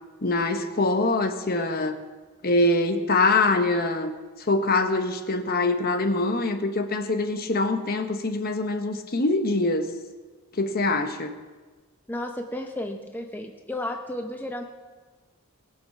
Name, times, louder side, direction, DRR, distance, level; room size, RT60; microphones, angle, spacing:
voice 1, 0.2-2.0 2.4-4.1 4.5-9.9 10.6-11.3, left 2 dB, 45° left, 7 dB, 1.0 m, -24 dB
voice 2, 12.1-14.6, left 1 dB, 10° left, 3 dB, 0.7 m, -33 dB
19.0 x 6.9 x 5.9 m, 1.3 s
head